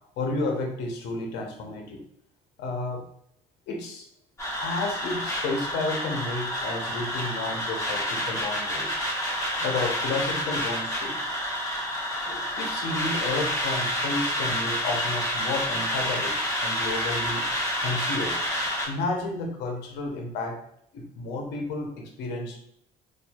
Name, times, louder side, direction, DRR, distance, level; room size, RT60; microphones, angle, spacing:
voice 1, 0.2-2.0 2.6-3.0 3.7-4.1 4.6-9.0 9.6-11.2 12.3-16.3 16.6-17.4 17.8-18.4 18.8-20.6 20.9-22.6, left 3 dB, 85° left, 2 dB, 0.8 m, -31 dB
sound 1, 4.4-18.9, equal, 20° left, 1.3 m, -29 dB
4.2 x 2.6 x 2.3 m, 0.72 s
cardioid pair, 110°, 17 cm